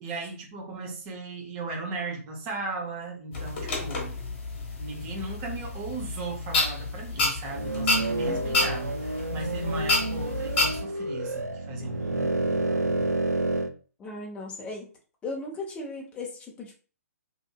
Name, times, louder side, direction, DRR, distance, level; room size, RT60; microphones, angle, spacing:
voice 1, 0.0-4.2 4.8-13.1, right 2 dB, 25° right, 1 dB, 0.8 m, -37 dB
sound 1, 3.3-10.8, left 2 dB, 40° left, 1.2 m, -29 dB
sound 2, 7.5-13.7, right 2 dB, 90° right, 0.4 m, -29 dB
voice 2, 8.2-8.7 14.0-14.9 15.2-16.7, left 2 dB, 15° left, -2 dB, 0.8 m, -37 dB
2.9 x 2.5 x 2.3 m, 0.37 s
figure-of-eight pair, 125°, 8 cm